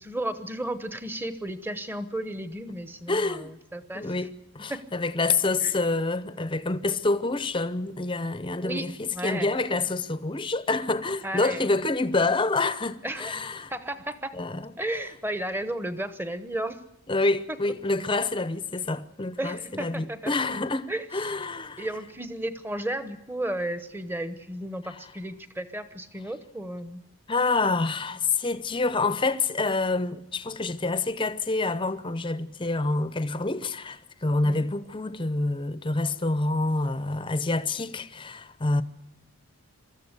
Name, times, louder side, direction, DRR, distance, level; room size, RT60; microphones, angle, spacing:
voice 1, 0.0-4.1 4.7-4.8 5.6-5.7 8.6-9.5 11.2-11.6 13.0-13.4 13.7-14.4 14.8-16.8 19.4-20.3 20.9-21.1 21.8-27.0 34.4-34.7, right 1 dB, 10° right, 0.9 m, -33 dB
voice 2, 3.1-3.5 3.9-4.3 4.5-13.7 14.3-14.7 17.1-21.9 27.3-38.8, left 3 dB, 20° left, 0.7 m, -27 dB
23.5 x 13.5 x 8.2 m
head